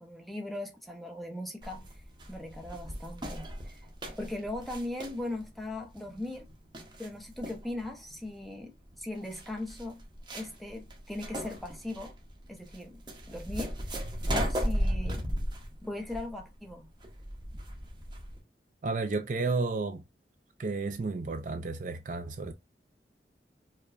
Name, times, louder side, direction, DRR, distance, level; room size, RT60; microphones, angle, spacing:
voice 1, 0.0-2.0 2.3-3.8 4.2-6.5 7.0-10.0 10.3-12.1 12.5-13.0 13.3-15.3 15.8-16.9, left 1 dB, ahead, 0.7 m, -39 dB
sound 1, 1.6-18.4, equal, 25° right, 0.8 m, -36 dB
voice 2, 18.8-20.0 20.6-22.5, right 3 dB, 45° right, 0.4 m, -32 dB
4.8 x 2.2 x 2.4 m
head